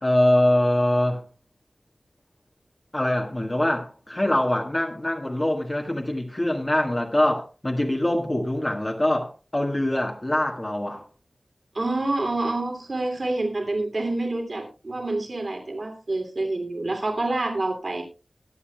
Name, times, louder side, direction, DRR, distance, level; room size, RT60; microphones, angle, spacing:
voice 1, 0.0-1.2 2.9-11.0, left 1 dB, 25° left, 1.6 m, -23 dB
voice 2, 11.7-18.0, right 2 dB, 55° right, 2.8 m, -27 dB
22.0 x 8.3 x 2.3 m
wide cardioid pair, 85°, 0 cm